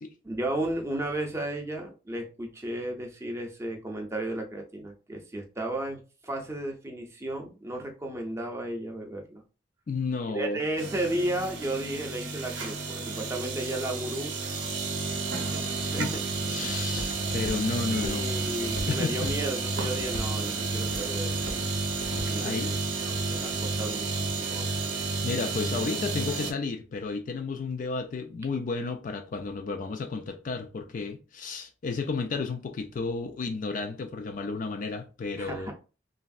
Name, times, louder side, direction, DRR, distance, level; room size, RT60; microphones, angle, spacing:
voice 1, 0.2-9.4 10.3-14.3 15.8-16.2 16.6-16.8 17.9-21.7 22.3-24.8 35.4-35.7, right 1 dB, 15° right, 0.5 m, -34 dB
voice 2, 9.9-10.6 16.0-16.2 16.5-18.4 18.9-19.3 22.4-22.7 25.2-35.7, left 4 dB, 45° left, 0.3 m, -32 dB
sound 1, 10.8-26.5, right 3 dB, 65° right, 0.6 m, -31 dB
Walk footsteps, 15.6-23.5, left 1 dB, 60° left, 0.7 m, -43 dB
3.0 x 2.6 x 2.3 m
head